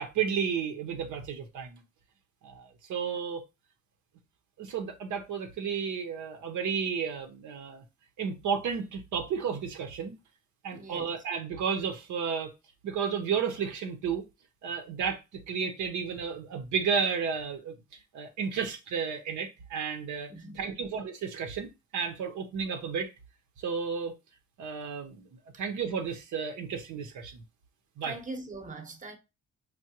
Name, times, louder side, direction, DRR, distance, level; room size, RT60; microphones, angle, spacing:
voice 1, 0.0-1.8 2.4-3.4 4.6-7.8 8.2-10.1 10.6-12.5 12.8-14.2 14.6-15.2 15.5-17.7 18.1-23.1 23.6-24.1 24.6-25.3 25.6-27.4 28.0-28.1, right 6 dB, 75° right, 0.8 m, -32 dB
voice 2, 10.7-11.1 20.3-20.8 28.0-29.1, right 2 dB, 25° right, 0.8 m, -41 dB
4.7 x 2.2 x 2.8 m
cardioid pair, 90°, 30 cm